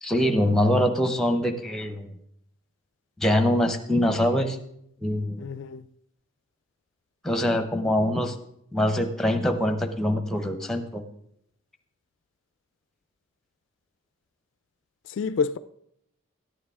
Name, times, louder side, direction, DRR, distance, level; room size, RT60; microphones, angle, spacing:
voice 1, 0.0-2.1 3.2-4.6 5.0-5.5 7.2-8.3 8.7-11.0, left 1 dB, ahead, 0.7 m, -24 dB
voice 2, 5.4-5.9 15.1-15.6, left 5 dB, 60° left, 0.3 m, -28 dB
13.5 x 9.5 x 3.6 m
head